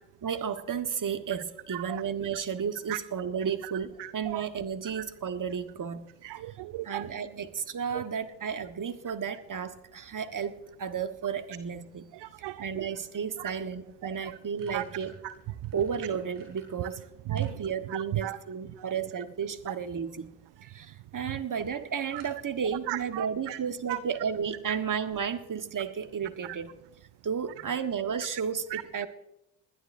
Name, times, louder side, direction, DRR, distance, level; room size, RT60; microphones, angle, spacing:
voice 1, 0.2-6.1 6.8-12.1 12.6-15.2 15.7-20.3 20.7-26.7 27.2-29.1, right 7 dB, 40° right, 8 dB, 1.5 m, -33 dB
voice 2, 1.7-2.0 2.9-3.0 4.0-4.4 5.0-5.1 6.2-7.0 12.1-12.6 14.2-14.3 14.7-14.8 15.2-15.3 17.3-17.4 17.9-18.4 22.1-22.2 22.9-23.6 23.9-24.0 28.7-28.8, right 15 dB, 60° right, 16 dB, 0.6 m, -35 dB
sound 1, 14.6-17.6 18.0-18.9 20.0-20.4 20.7-20.8 21.1-21.2 21.5-21.6 22.2-22.7, right 5 dB, 85° right, 4.3 m, -52 dB
20.5 x 12.5 x 2.7 m, 0.83 s
hypercardioid pair, 45°, 47 cm